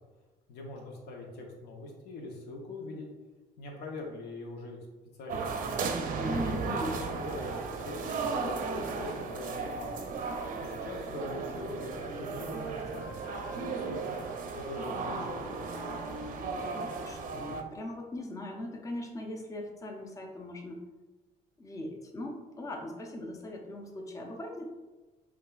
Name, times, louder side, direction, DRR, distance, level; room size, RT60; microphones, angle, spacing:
voice 1, 0.5-3.1 3.6-4.8 5.2-5.4 6.3-9.9 10.6-14.1 14.5-15.6, left 2 dB, 80° left, 1 dB, 0.8 m, -42 dB
sound 1, 5.3-17.6, right 4 dB, 55° right, 0.5 m, -35 dB
voice 2, 6.2-7.0 16.4-20.9 21.6-24.7, left 1 dB, 20° left, 2 dB, 0.5 m, -39 dB
5.5 x 2.5 x 2.3 m, 1.2 s
cardioid pair, 110°, 17 cm